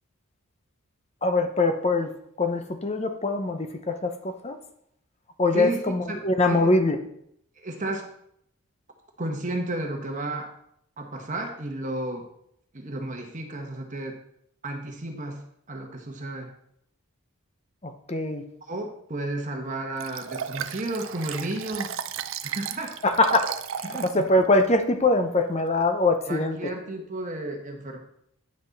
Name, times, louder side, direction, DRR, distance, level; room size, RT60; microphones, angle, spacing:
voice 1, 1.2-2.1 2.4-4.6 5.4-7.0 17.8-18.4 23.0-23.5 24.0-26.6, left 2 dB, 30° left, 7 dB, 0.7 m, -23 dB
voice 2, 6.1-6.7 7.6-8.1 9.2-10.5 11.0-12.3 12.7-14.2 14.6-15.4 15.7-16.5 18.7-21.9 22.4-22.9 23.8-24.1 26.3-28.0, right 2 dB, 35° right, 3 dB, 1.1 m, -32 dB
Liquid, 20.0-24.2 24.6-24.7, right 8 dB, 65° right, 0.5 m, -34 dB
9.6 x 6.0 x 4.0 m, 0.72 s
head